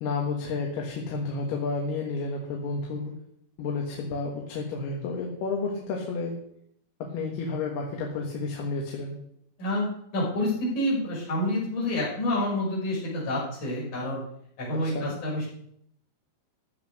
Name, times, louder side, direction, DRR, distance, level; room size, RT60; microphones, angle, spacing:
voice 1, 0.0-3.1 3.6-6.4 7.0-9.2 14.7-15.1, left 3 dB, 85° left, 0 dB, 3.7 m, -31 dB
voice 2, 10.1-14.2 14.6-15.5, left 1 dB, 50° left, -5 dB, 7.4 m, -28 dB
14.5 x 8.3 x 6.6 m, 0.70 s
omnidirectional pair, 4.5 m